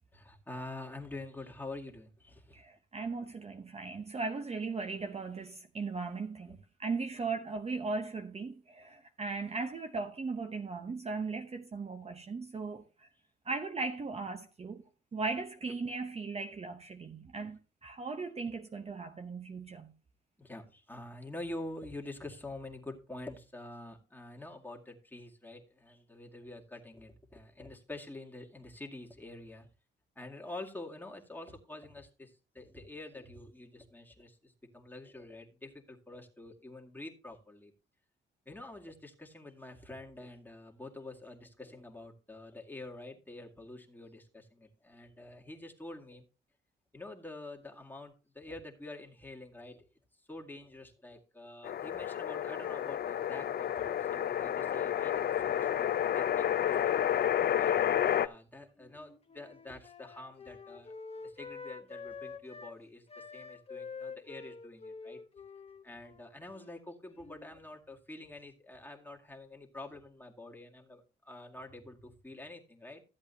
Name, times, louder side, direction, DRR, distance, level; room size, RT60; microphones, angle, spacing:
voice 1, 0.1-2.6 6.5-6.6 20.4-29.7 30.2-37.7 38.5-46.2 46.9-49.9 50.2-57.7 58.2-60.9 61.2-65.2 65.8-73.0, left 2 dB, 10° left, 2.1 m, -47 dB
voice 2, 2.5-13.1 13.4-14.8 15.1-19.9, right 4 dB, 30° right, 0.9 m, -38 dB
sound 1, 51.6-58.3, left 10 dB, 55° left, 0.5 m, -30 dB
Wind instrument woodwind instrument, 58.8-62.8 63.1-67.6, left 4 dB, 30° left, 1.0 m, -47 dB
14.5 x 8.1 x 2.8 m
cardioid pair, 90°, 20 cm